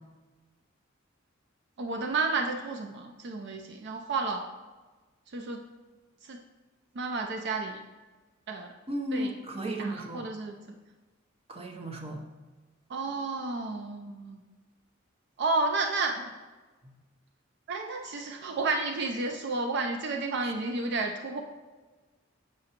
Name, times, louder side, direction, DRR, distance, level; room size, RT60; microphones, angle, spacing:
voice 1, 1.8-4.5 5.3-5.6 6.2-6.4 7.0-7.8 8.5-8.7 9.1-9.3 9.8-10.6 12.9-14.4 15.4-16.3 17.7-21.4, right 3 dB, 60° right, 5 dB, 0.4 m, -31 dB
voice 2, 8.9-10.3 11.5-12.2 16.8-17.0 20.4-20.5, right 1 dB, 30° right, 3 dB, 0.7 m, -35 dB
7.6 x 5.9 x 2.9 m, 1.3 s
head